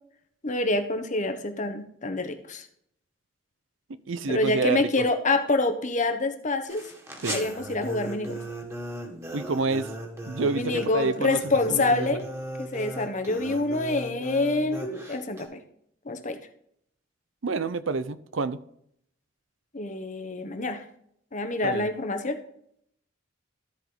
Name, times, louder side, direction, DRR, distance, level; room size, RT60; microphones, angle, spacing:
voice 1, 0.4-2.7 4.3-6.8 7.3-8.4 10.4-12.2 12.6-15.6 16.0-16.4 19.7-20.8 21.3-22.4, left 2 dB, 40° left, 1.1 m, -27 dB
voice 2, 4.1-4.8 7.2-7.4 9.3-9.9 10.3-11.4 11.7-11.8 17.4-18.6 21.6-21.9, right 4 dB, 85° right, 0.7 m, -28 dB
sound 1, 6.7-15.5, right 1 dB, 15° right, 1.9 m, -37 dB
13.5 x 5.1 x 3.9 m
head